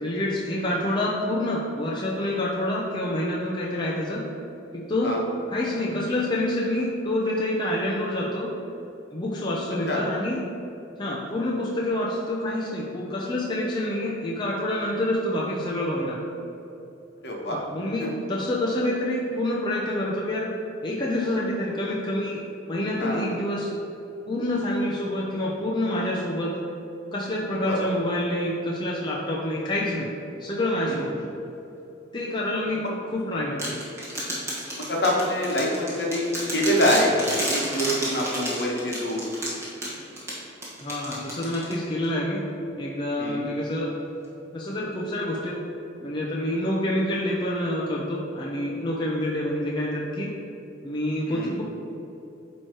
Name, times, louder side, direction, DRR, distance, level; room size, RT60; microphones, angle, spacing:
voice 1, 0.0-4.2 4.7-5.2 5.5-8.5 9.1-10.4 11.0-16.2 17.5-20.5 20.8-22.4 22.7-23.7 24.3-26.5 27.1-30.1 30.4-31.2 32.1-33.8 40.8-42.5 42.8-43.9 44.5-45.6 46.0-50.3 50.8-51.6, left 1 dB, 25° left, -4 dB, 0.6 m, -27 dB
voice 2, 17.2-17.6 18.0-18.1 23.0-23.4 27.6-27.8 30.9-31.0 32.8-32.9 34.8-39.2 43.2-43.4 51.3-51.5, equal, 60° left, -2 dB, 1.2 m, -25 dB
sound 1, 33.6-42.1, equal, 15° right, 1.5 m, -31 dB
8.9 x 3.1 x 4.5 m, 2.9 s
head